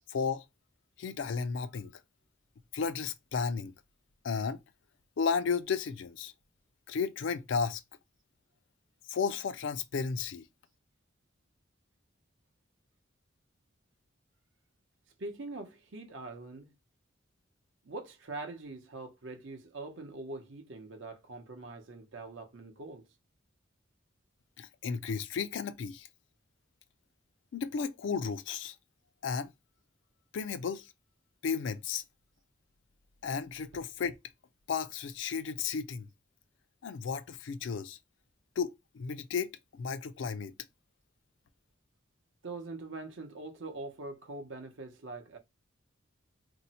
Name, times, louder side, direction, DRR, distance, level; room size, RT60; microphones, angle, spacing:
voice 1, 0.1-0.4 1.0-1.9 2.7-3.7 4.2-4.6 5.2-6.3 6.9-7.8 9.1-10.5 24.6-26.1 27.5-28.7 29.2-29.5 30.3-30.9 31.4-32.0 33.2-34.2 34.7-36.1 36.8-38.0 38.6-40.5, left 5 dB, 65° left, 0.3 m, -33 dB
voice 2, 15.2-16.8 17.8-23.0 42.4-45.4, right 2 dB, 70° right, 0.7 m, -43 dB
2.7 x 2.0 x 4.0 m
head